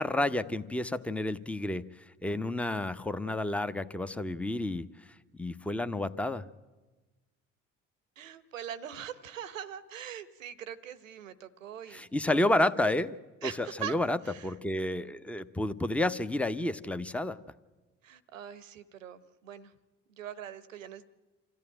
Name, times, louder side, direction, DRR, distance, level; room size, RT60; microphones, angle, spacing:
voice 1, 0.0-4.8 5.4-6.4 11.9-17.4, left 1 dB, 5° left, 12 dB, 0.8 m, -30 dB
voice 2, 8.2-12.4 13.4-14.0 14.2-14.5 18.0-19.7 20.1-21.1, right 10 dB, 85° right, 15 dB, 0.9 m, -42 dB
26.5 x 14.0 x 8.9 m, 1.2 s
figure-of-eight pair, 50°, 38 cm